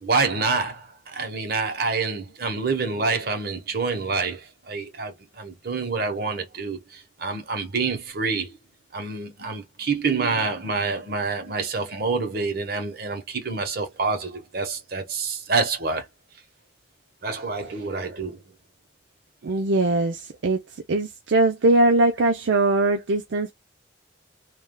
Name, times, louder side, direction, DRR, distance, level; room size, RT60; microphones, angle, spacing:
voice 1, 0.0-8.5 8.9-16.1 17.2-18.4, right 4 dB, 55° right, 1.0 m, -27 dB
voice 2, 19.4-20.6 20.9-23.5, right 2 dB, 75° right, 0.5 m, -21 dB
3.3 x 2.3 x 2.2 m
head